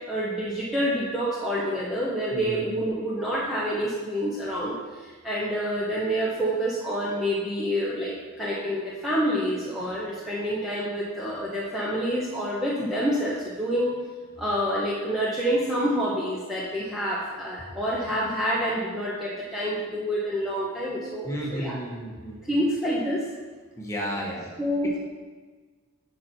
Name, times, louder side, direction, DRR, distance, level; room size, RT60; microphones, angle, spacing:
voice 1, 0.1-4.7 5.0-13.9 14.4-21.8 22.5-23.2 24.6-24.9, equal, ahead, -7 dB, 1.0 m, -27 dB
voice 2, 2.3-2.7 21.2-22.4 23.8-24.5 24.8-25.0, equal, 15° left, -3 dB, 1.3 m, -33 dB
8.2 x 5.9 x 4.5 m, 1.4 s
head